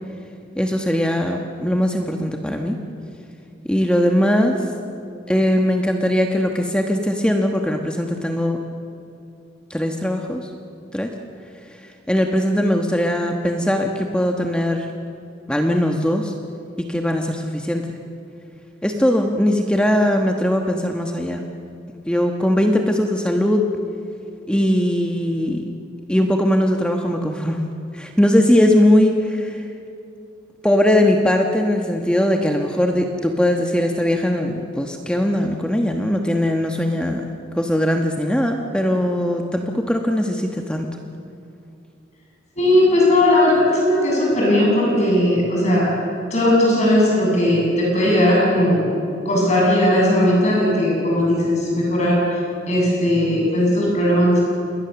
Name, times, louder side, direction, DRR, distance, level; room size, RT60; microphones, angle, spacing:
voice 1, 0.6-2.8 3.7-4.6 5.3-8.6 9.7-10.5 10.9-11.1 12.1-14.9 15.5-16.3 16.9-18.0 18.8-21.4 22.1-23.7 24.5-25.6 26.1-27.7 27.9-29.6 30.6-37.2 37.5-40.9, left 1 dB, 5° left, 3 dB, 1.2 m, -20 dB
voice 2, 42.6-45.9 46.3-48.9 49.2-52.2 52.7-54.4, left 1 dB, 40° left, -3 dB, 7.9 m, -17 dB
27.5 x 21.5 x 7.0 m, 2.6 s
head